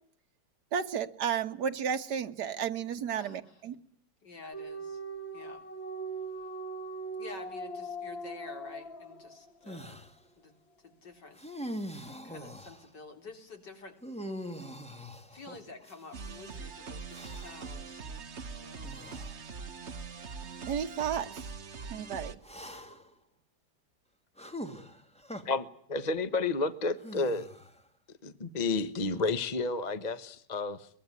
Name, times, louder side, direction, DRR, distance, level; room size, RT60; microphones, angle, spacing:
voice 1, 0.7-3.8 20.7-21.6 21.9-22.4, right 8 dB, 65° right, 1.9 m, -33 dB
voice 2, 3.1-3.5 4.2-5.0 5.3-5.6 7.2-10.0 10.4-10.5 10.8-11.4 12.2-13.9 14.6-15.0 15.3-18.9, left 3 dB, 65° left, 4.3 m, -49 dB
sound 1, 4.5-9.8, right 2 dB, 85° left, 3.0 m, -40 dB
sound 2, 9.7-10.1 11.3-12.9 14.0-16.3 17.1-17.7 18.8-19.3 20.2-20.3 22.4-23.1 24.4-25.4 27.0-27.8, equal, 5° left, 2.1 m, -43 dB
sound 3, 16.1-22.4, right 5 dB, 40° right, 1.6 m, -42 dB
voice 3, 25.4-27.5 28.2-30.9, left 3 dB, 25° left, 1.1 m, -31 dB
23.5 x 21.5 x 9.6 m
omnidirectional pair, 2.0 m